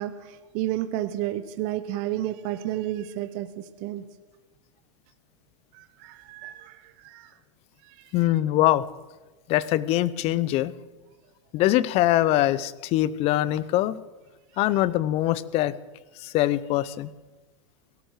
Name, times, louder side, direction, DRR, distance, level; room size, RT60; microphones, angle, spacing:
voice 1, 0.0-4.0 5.7-7.3 7.8-8.1, right 13 dB, 50° right, 11 dB, 0.9 m, -32 dB
voice 2, 8.1-8.8 9.5-10.7 11.5-14.0 14.6-15.7 16.2-17.1, left 14 dB, 40° left, 19 dB, 0.6 m, -23 dB
17.5 x 12.5 x 4.8 m, 1.2 s
hypercardioid pair, 115°, 16 cm